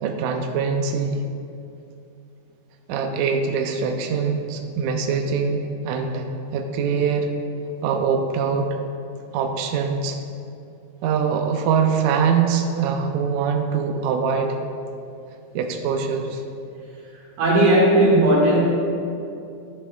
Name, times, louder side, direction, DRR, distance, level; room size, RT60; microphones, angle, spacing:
voice 1, 0.0-1.2 2.9-6.2 6.5-7.3 7.8-8.8 9.3-10.2 11.0-14.5 15.5-16.4, right 6 dB, 85° right, 4 dB, 1.6 m, -23 dB
voice 2, 17.4-18.6, right 1 dB, 65° right, -6 dB, 3.0 m, -16 dB
10.5 x 7.3 x 2.2 m, 2.6 s
omnidirectional pair, 3.8 m